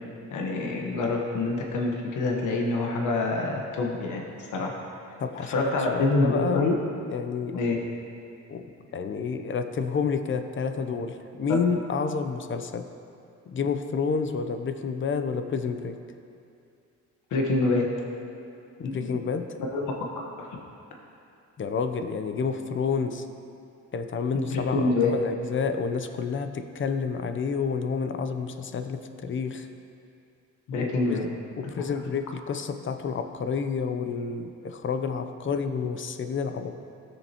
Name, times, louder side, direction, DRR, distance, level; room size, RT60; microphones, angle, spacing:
voice 1, 0.3-4.7 5.4-6.7 7.5-7.8 17.3-17.9 18.8-19.3 19.6-19.9 20.4-20.5 24.3-25.2 30.7-31.3, left 3 dB, 80° left, 0 dB, 1.3 m, -26 dB
voice 2, 5.2-6.8 7.1-7.6 8.5-12.9 13.5-16.0 18.8-19.6 21.6-23.3 23.9-29.7 30.8-31.2 31.6-36.8, left 5 dB, 40° left, 8 dB, 0.7 m, -29 dB
16.0 x 7.1 x 3.0 m, 2.6 s
cardioid pair, 90°, 30 cm